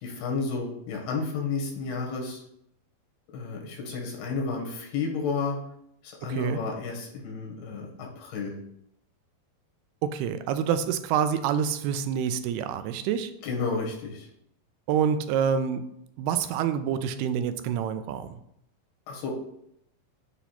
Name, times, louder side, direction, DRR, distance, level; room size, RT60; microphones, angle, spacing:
voice 1, 0.0-2.4 3.3-5.6 6.0-8.6 13.4-14.3 19.1-19.3, left 4 dB, 85° left, 0 dB, 3.5 m, -32 dB
voice 2, 10.0-13.3 14.9-15.8 16.2-18.3, right 8 dB, 90° right, 10 dB, 2.6 m, -27 dB
8.2 x 3.0 x 5.7 m, 0.75 s
omnidirectional pair, 4.4 m